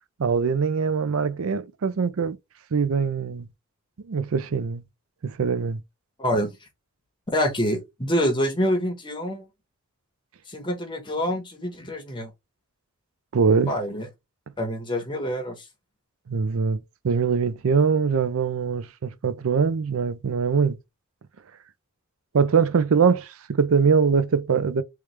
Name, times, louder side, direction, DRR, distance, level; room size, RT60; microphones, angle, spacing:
voice 1, 0.2-2.4 2.7-3.5 4.1-4.8 5.2-5.8 13.3-13.7 16.3-16.8 17.0-20.8 22.3-24.8, right 5 dB, 65° right, 0.5 m, -22 dB
voice 2, 6.2-6.5 7.3-9.5 10.5-12.3 13.7-14.1 14.6-15.6, equal, 20° left, 1.2 m, -26 dB
3.3 x 3.1 x 3.2 m
head